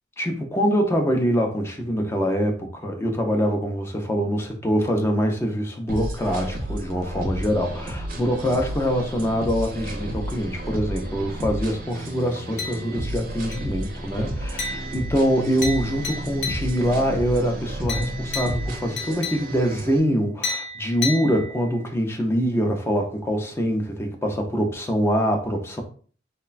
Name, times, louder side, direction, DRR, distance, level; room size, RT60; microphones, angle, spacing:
voice 1, 0.2-25.8, equal, 15° left, 0.3 m, -24 dB
sound 1, 5.9-20.0, right 1 dB, 50° right, 0.5 m, -32 dB
sound 2, 12.6-13.1 13.5-13.9 14.6-17.0 17.9-19.8 20.4-21.9, left 3 dB, 80° left, 0.7 m, -33 dB
3.1 x 2.1 x 2.3 m
head